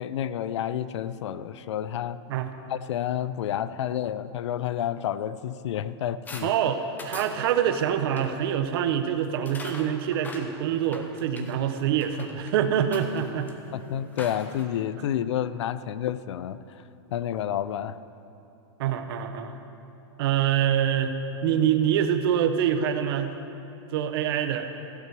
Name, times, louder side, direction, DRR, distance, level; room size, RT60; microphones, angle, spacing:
voice 1, 0.0-2.2 2.7-6.5 11.4-11.5 13.7-16.8 17.1-18.0, left 10 dB, 85° left, 15 dB, 0.4 m, -30 dB
sound 1, 6.3-6.5 7.0-7.4 8.0-8.3 9.5-11.6 12.0-12.5 12.9-14.6, left 3 dB, 10° left, 0.7 m, -42 dB
voice 2, 6.4-13.5 18.8-19.6 20.2-21.1 21.4-23.4 23.9-24.7, right 9 dB, 55° right, 8 dB, 0.8 m, -25 dB
15.5 x 7.9 x 4.6 m, 2.9 s
supercardioid pair, 155°, 15 cm